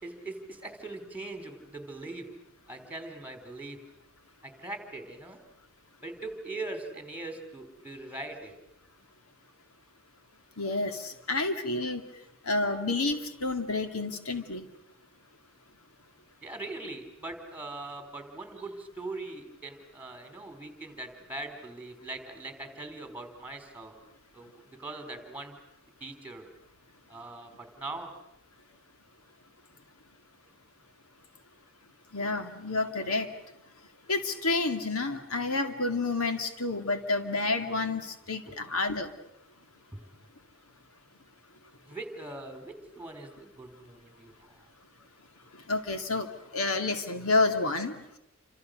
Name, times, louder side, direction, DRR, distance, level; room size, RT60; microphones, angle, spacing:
voice 1, 0.0-2.3 2.7-3.8 4.4-5.4 6.0-8.5 16.4-23.9 24.3-25.6 26.0-26.5 27.1-28.1 38.5-38.6 39.9-40.1 41.9-44.3, right 2 dB, 5° right, 7 dB, 3.9 m, -41 dB
voice 2, 10.6-12.0 12.4-14.7 32.1-33.3 34.1-39.1 45.7-48.2, left 3 dB, 75° left, 7 dB, 2.3 m, -29 dB
29.0 x 27.0 x 6.6 m, 0.82 s
head